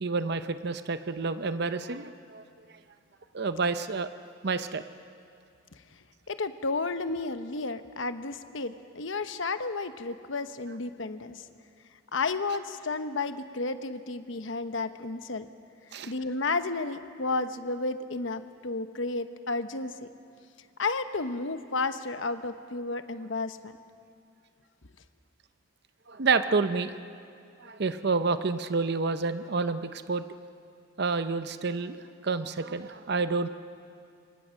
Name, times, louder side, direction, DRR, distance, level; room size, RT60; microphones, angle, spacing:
voice 1, 0.0-2.4 3.3-4.1 4.4-4.8 15.9-16.1 26.1-26.9 27.6-30.2 31.0-32.0 32.2-33.5, right 4 dB, 55° right, 10 dB, 0.7 m, -29 dB
voice 2, 6.3-11.4 12.1-15.4 16.1-20.1 20.8-23.7, left 3 dB, 70° left, 10 dB, 1.0 m, -32 dB
26.0 x 24.0 x 6.4 m, 2.4 s
head